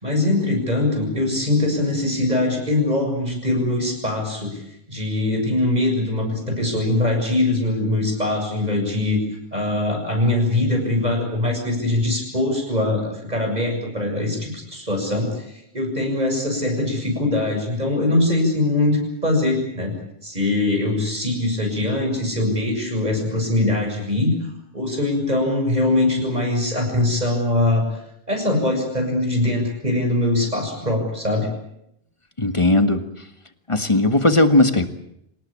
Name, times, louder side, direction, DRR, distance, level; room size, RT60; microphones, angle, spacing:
voice 1, 0.0-4.6 4.9-9.2 9.5-15.4 15.7-19.9 20.2-24.3 24.7-27.8 28.3-31.5, left 2 dB, 40° right, 3 dB, 7.1 m, -22 dB
voice 2, 32.4-33.0 33.7-34.9, left 2 dB, 30° left, 9 dB, 1.7 m, -17 dB
26.5 x 19.0 x 8.7 m, 0.77 s
omnidirectional pair, 1.1 m